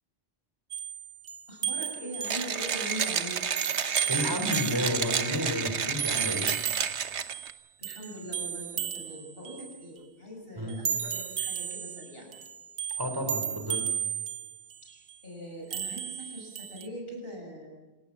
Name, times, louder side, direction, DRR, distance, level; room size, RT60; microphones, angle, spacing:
sound 1, 0.7-5.5 6.0-7.6 7.8-9.8 10.7-15.1 15.7-16.9, right 8 dB, 70° right, 1.3 m, -34 dB
voice 1, 1.5-3.4 7.8-12.3 14.8-17.7, equal, 60° left, 0 dB, 6.9 m, -41 dB
Mechanisms, 2.2-7.5, right 7 dB, 90° right, 1.3 m, -31 dB
voice 2, 4.0-6.5 10.6-10.8 13.0-13.9, left 1 dB, 20° right, 4 dB, 4.0 m, -31 dB
27.0 x 18.5 x 7.4 m, 1.1 s
omnidirectional pair, 1.1 m